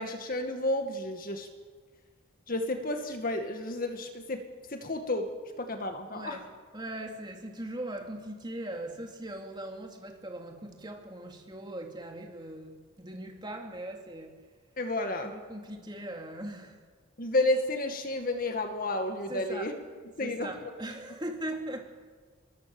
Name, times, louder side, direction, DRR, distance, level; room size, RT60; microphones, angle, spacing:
voice 1, 0.0-1.5 2.5-4.4 4.7-5.3 5.6-6.4 14.8-15.3 17.2-19.8 20.2-20.7, left 2 dB, 40° left, 5 dB, 2.1 m, -31 dB
voice 2, 6.1-6.5 6.7-14.4 15.3-16.8 19.3-19.7 20.2-21.8, right 1 dB, 20° right, 2 dB, 3.0 m, -40 dB
27.5 x 23.0 x 7.2 m, 1.5 s
head